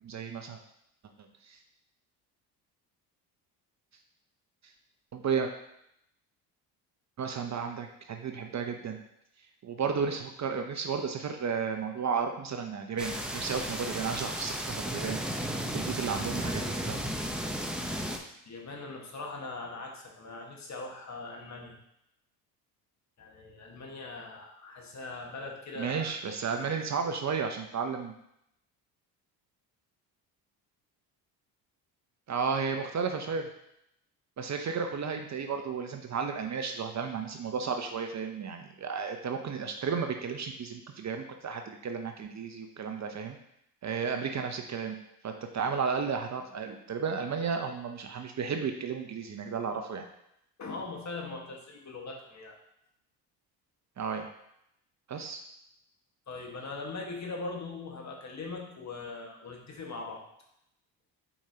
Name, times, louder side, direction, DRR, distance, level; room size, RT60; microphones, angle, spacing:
voice 1, 0.0-0.6 1.5-1.6 5.1-5.5 7.2-9.0 9.6-15.2 15.4-17.0 25.8-28.1 32.3-33.5 34.4-43.4 43.8-45.0 45.2-50.1 54.0-54.3 55.1-55.4, right 6 dB, 35° right, 5 dB, 0.7 m, -33 dB
sound 1, 13.0-18.2, equal, ahead, 0.8 m, -34 dB
voice 2, 18.4-21.8 23.2-26.1 26.5-26.9 50.6-52.6 56.3-60.3, left 3 dB, 35° left, 1 dB, 1.6 m, -41 dB
7.2 x 4.9 x 2.8 m, 0.77 s
supercardioid pair, 70°, 45 cm